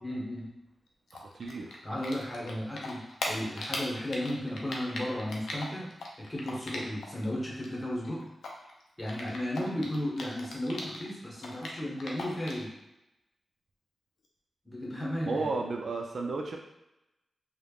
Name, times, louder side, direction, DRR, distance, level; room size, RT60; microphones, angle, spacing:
voice 1, 0.0-0.6 1.8-5.9 6.2-8.2 9.0-12.8 14.6-15.5, left 1 dB, 15° left, -4 dB, 1.0 m, -34 dB
Typing, 1.1-2.5 2.8-7.2 7.5-11.1 11.4-12.7, left 2 dB, 85° left, 0.4 m, -39 dB
voice 2, 1.1-1.7 15.3-16.6, right 3 dB, 70° right, 1 dB, 0.4 m, -33 dB
3.2 x 2.1 x 2.3 m, 0.93 s
cardioid pair, 60°, 0 cm